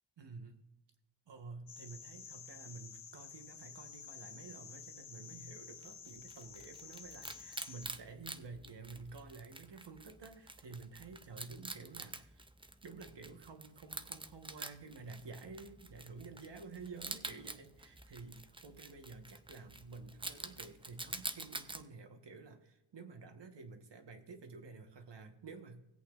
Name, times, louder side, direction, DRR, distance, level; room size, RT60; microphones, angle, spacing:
voice 1, 0.2-0.6 1.3-12.5 12.8-25.8, right 4 dB, 60° right, 6 dB, 1.3 m, -51 dB
sound 1, 1.7-7.9, left 6 dB, 70° left, 1.1 m, -51 dB
Wild animals, 5.8-21.8, right 2 dB, 10° right, 0.4 m, -48 dB
19.0 x 8.4 x 2.5 m, 0.93 s
wide cardioid pair, 150°, 48 cm